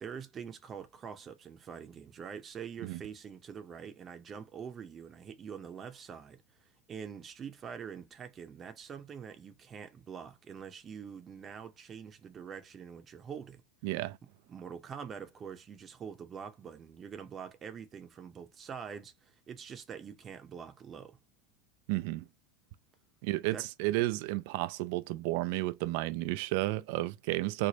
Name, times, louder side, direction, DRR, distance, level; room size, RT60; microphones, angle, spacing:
voice 1, 0.0-13.6 14.5-21.2 23.5-23.7, right 7 dB, 30° right, 0.7 m, -45 dB
voice 2, 13.8-14.2 21.9-22.2 23.2-27.7, right 18 dB, 65° right, 0.3 m, -32 dB
3.3 x 2.1 x 3.9 m
hypercardioid pair, 90°, 0 cm